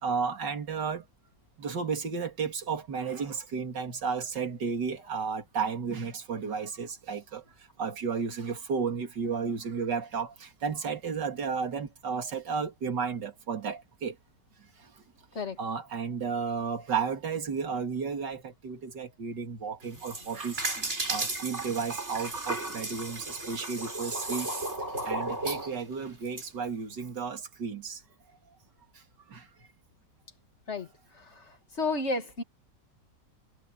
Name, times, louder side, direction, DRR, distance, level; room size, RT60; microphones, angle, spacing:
voice 1, 0.0-1.0 1.6-7.4 7.8-14.2 14.8-14.9 15.3-20.7 21.1-24.5 24.8-28.0 28.9-29.0 29.3-29.5, right 5 dB, 75° right, 3.1 m, -33 dB
sound 1, 19.8-26.4, right 2 dB, 40° right, 4.3 m, -34 dB
voice 2, 31.8-32.4, left 3 dB, 40° left, 2.5 m, -30 dB
omnidirectional pair, 1.9 m